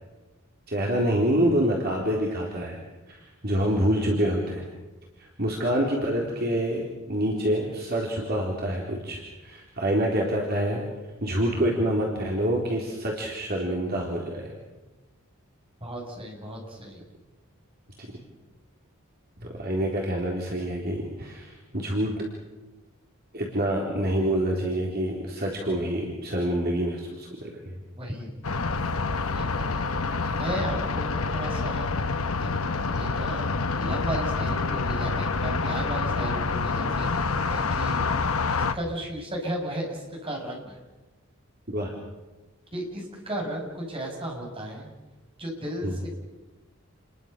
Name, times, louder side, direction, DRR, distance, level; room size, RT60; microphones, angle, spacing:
voice 1, 0.7-2.8 3.1-4.7 5.2-10.8 11.2-14.5 19.6-22.1 23.3-27.7 41.7-41.9 45.8-46.0, right 1 dB, 45° right, -1 dB, 3.9 m, -27 dB
voice 2, 15.8-17.0 28.0-28.3 29.3-29.8 30.3-31.9 32.4-38.0 38.5-40.8 42.7-44.9 45.4-46.1, right 1 dB, 25° right, 0 dB, 6.8 m, -35 dB
sound 1, 28.4-38.7, left 4 dB, 90° left, 1.2 m, -27 dB
29.5 x 22.0 x 6.8 m, 1.1 s
head